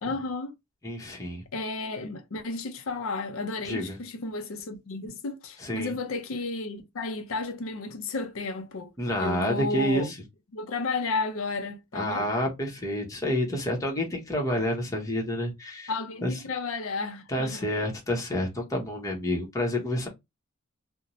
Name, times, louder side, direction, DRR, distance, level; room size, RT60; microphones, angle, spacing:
voice 1, 0.0-0.5 1.5-8.9 9.2-10.1 10.5-12.3 15.9-17.7, left 3 dB, 75° left, 0.5 m, -32 dB
voice 2, 0.8-1.4 3.6-4.0 5.6-5.9 9.0-10.1 11.9-15.9 16.2-16.3 17.3-20.1, equal, 15° left, 0.8 m, -29 dB
2.6 x 2.1 x 2.8 m
head